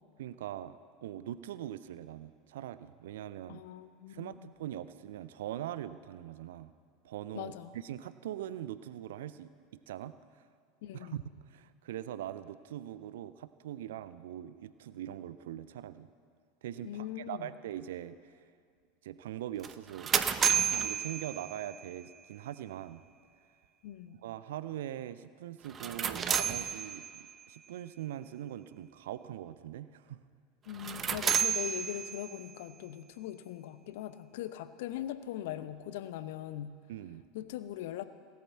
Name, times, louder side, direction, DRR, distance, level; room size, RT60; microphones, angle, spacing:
voice 1, 0.2-3.6 4.1-6.7 7.0-10.4 10.9-16.1 16.6-18.4 19.0-20.2 20.5-23.0 24.2-30.2 36.9-37.2, right 12 dB, 65° right, 15 dB, 0.4 m, -42 dB
voice 2, 3.5-4.5 7.3-7.7 10.8-11.2 16.8-17.5 23.8-24.2 30.6-36.8 37.3-38.0, left 12 dB, 60° left, 13 dB, 0.7 m, -41 dB
sound 1, 19.6-21.9 25.6-27.3 30.7-32.5, right 7 dB, 30° right, 0.7 m, -31 dB
17.0 x 8.7 x 7.4 m, 2.1 s
figure-of-eight pair, 80°, 0 cm